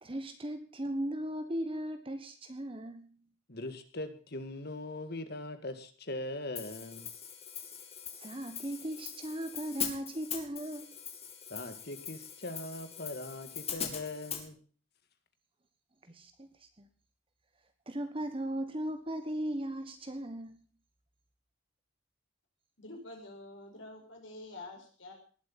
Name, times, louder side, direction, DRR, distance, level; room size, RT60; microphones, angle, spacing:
voice 1, 0.0-3.1 8.2-11.0 16.0-16.9 17.9-20.6, right 1 dB, 25° right, 1.3 m, -37 dB
voice 2, 3.5-7.1 11.5-14.6, left 2 dB, 50° left, 2.1 m, -41 dB
Hi-hat, 6.6-14.5, left 8 dB, 30° left, 2.4 m, -41 dB
voice 3, 22.8-25.1, left 2 dB, 70° left, 5.2 m, -47 dB
19.5 x 8.2 x 7.3 m
head